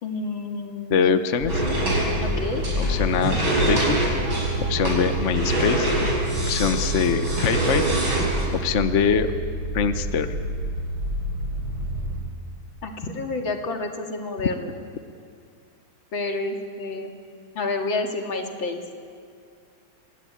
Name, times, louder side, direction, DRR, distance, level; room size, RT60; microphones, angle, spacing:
voice 1, 0.0-1.3 2.2-2.6 12.8-14.7 16.1-17.1 17.5-18.8, left 3 dB, 70° left, 3 dB, 3.0 m, -29 dB
voice 2, 0.9-1.6 2.8-3.4 3.7-4.0 4.7-5.9 6.5-7.8 8.5-9.3 9.7-10.3, left 6 dB, 45° left, 9 dB, 1.1 m, -23 dB
sound 1, 1.4-12.2, equal, 20° right, 8.0 m, -29 dB
sound 2, 1.5-8.4, right 1 dB, 90° right, 6.8 m, -25 dB
29.0 x 19.5 x 8.9 m, 2.3 s
omnidirectional pair, 2.2 m